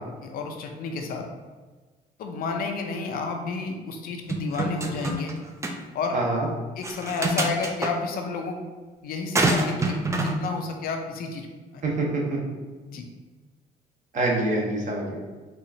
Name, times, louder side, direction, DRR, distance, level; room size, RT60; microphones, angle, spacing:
voice 1, 0.2-1.3 2.2-5.3 5.9-6.2 6.8-8.6 9.0-11.5 11.7-11.8 12.9-13.1, left 4 dB, 60° left, 3 dB, 0.5 m, -31 dB
sound 1, 4.3-5.3 5.6-5.8 6.8-7.9 9.3-10.4, right 2 dB, 15° right, 0.3 m, -25 dB
voice 2, 6.1-6.5 11.8-12.4 14.1-15.2, right 2 dB, 50° right, -2 dB, 1.0 m, -25 dB
4.3 x 2.4 x 2.7 m, 1.3 s
cardioid pair, 110°, 17 cm